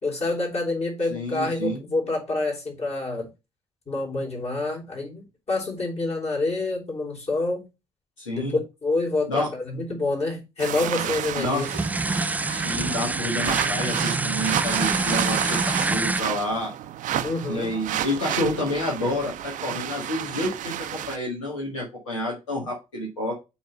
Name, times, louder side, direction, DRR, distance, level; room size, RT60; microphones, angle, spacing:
voice 1, 0.0-3.3 3.9-7.6 8.3-11.7 17.2-17.8, left 2 dB, 40° left, 3.2 m, -27 dB
voice 2, 1.1-1.8 8.2-8.6 9.3-9.5 11.3-11.7 12.5-16.7 17.5-23.3, left 1 dB, 80° left, 1.5 m, -29 dB
sound 1, 10.6-21.2, right 11 dB, 55° right, 0.6 m, -31 dB
sound 2, 11.5-16.2, right 3 dB, 10° right, 0.3 m, -26 dB
7.1 x 3.2 x 5.2 m
figure-of-eight pair, 45°, 16 cm